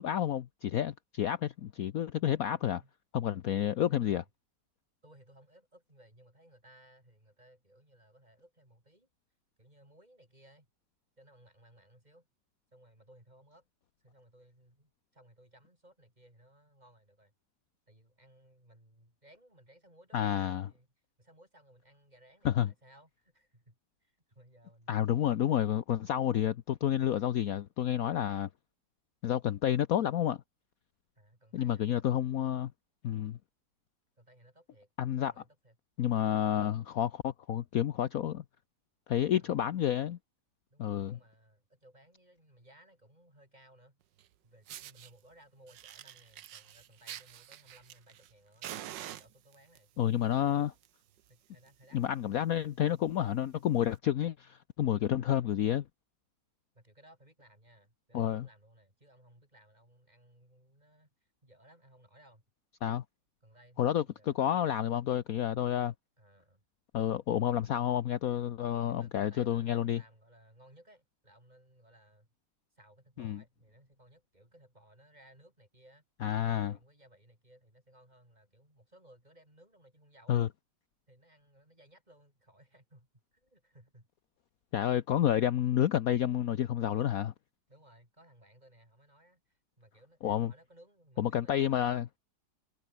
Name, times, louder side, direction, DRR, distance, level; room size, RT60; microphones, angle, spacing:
voice 1, 0.0-2.8 3.1-4.2 20.1-20.7 22.4-22.7 24.9-28.5 29.2-30.4 31.5-32.7 33.0-33.4 35.0-35.3 36.0-38.4 39.1-40.2 40.8-41.2 50.0-50.7 51.9-55.8 58.1-58.4 62.8-63.0 63.8-65.9 66.9-70.0 73.2-73.4 76.2-76.7 80.3-80.5 84.7-87.3 90.2-90.5 91.2-92.0, left 10 dB, 60° left, 1.1 m, -30 dB
voice 2, 2.5-2.9 3.9-4.3 5.0-9.1 9.6-10.7 11.2-12.3 12.7-13.7 14.0-17.3 17.9-20.9 21.2-25.1 31.2-32.1 34.2-34.9 35.3-35.8 39.4-39.7 40.7-44.0 44.4-48.7 49.1-50.7 51.3-52.5 55.2-55.6 56.7-62.4 63.4-64.6 66.2-66.6 68.6-72.3 72.7-76.1 76.4-80.5 81.1-84.1 87.7-91.9, right 1 dB, 20° right, 7.6 m, -61 dB
Fire, 44.2-44.3 44.7-45.1 45.7-48.3 48.6-49.8 50.6-50.9 51.2-51.3 51.7-51.8 52.0-52.3 52.8-52.9 53.8-53.9, right 12 dB, 85° right, 1.6 m, -46 dB
omnidirectional pair, 1.9 m